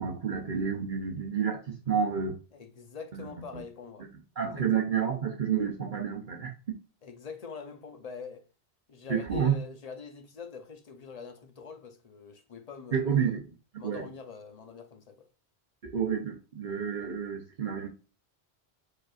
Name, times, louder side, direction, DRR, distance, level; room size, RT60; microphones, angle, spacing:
voice 1, 0.0-2.4 3.1-3.2 4.4-6.5 9.1-9.6 12.9-13.4 13.8-14.0 15.8-17.9, right 7 dB, 55° right, 0.9 m, -29 dB
voice 2, 2.5-4.1 4.4-4.9 7.0-8.5 8.9-13.4 13.8-15.3, left 5 dB, 45° left, 0.7 m, -45 dB
5.1 x 4.1 x 2.4 m
omnidirectional pair, 1.1 m